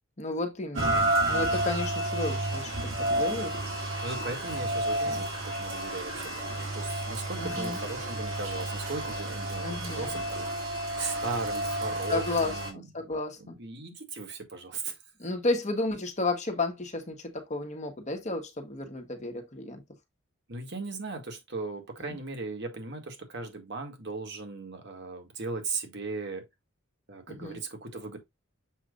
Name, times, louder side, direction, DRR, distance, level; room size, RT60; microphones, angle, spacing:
voice 1, 0.2-3.5 5.0-5.2 7.4-7.8 9.6-10.2 12.1-13.6 15.2-19.8 22.0-22.2 27.3-27.6, left 2 dB, 35° left, 1.4 m, -33 dB
Rain, 0.7-12.7, right 1 dB, 75° right, 2.5 m, -31 dB
voice 2, 4.0-10.5 11.0-12.9 13.4-15.0 20.5-26.4 27.1-28.2, right 3 dB, 60° right, 1.9 m, -37 dB
7.4 x 2.6 x 5.2 m
head